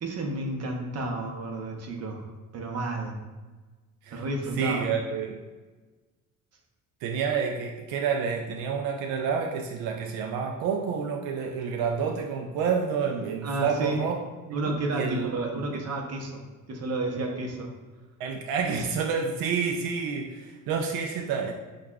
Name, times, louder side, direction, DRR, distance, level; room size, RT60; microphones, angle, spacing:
voice 1, 0.0-3.2 4.1-4.9 13.4-14.0 14.5-16.3 16.7-17.7, right 2 dB, 45° right, 1 dB, 0.8 m, -31 dB
voice 2, 4.6-5.4 7.0-14.2 14.6-15.8 18.2-21.5, right 6 dB, 85° right, 3 dB, 0.5 m, -29 dB
6.3 x 2.4 x 2.3 m, 1.3 s
cardioid pair, 95°, 34 cm